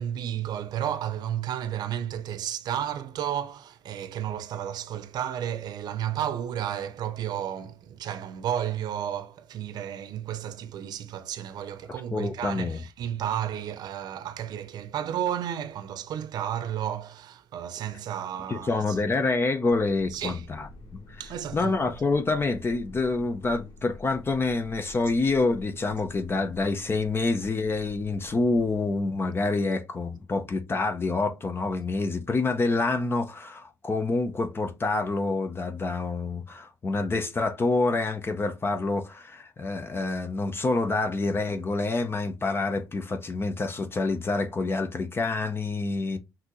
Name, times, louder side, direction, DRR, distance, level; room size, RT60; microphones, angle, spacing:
voice 1, 0.0-19.0 20.1-20.5 21.2-21.8, right 10 dB, 70° right, 0.7 m, -32 dB
voice 2, 12.1-12.8 18.5-20.7 21.1-21.2 21.5-46.2, left 3 dB, 30° left, 0.8 m, -27 dB
sound 1, 19.6-29.0, left 2 dB, 75° left, 1.6 m, -48 dB
5.9 x 2.8 x 3.1 m
cardioid pair, 80°, 7 cm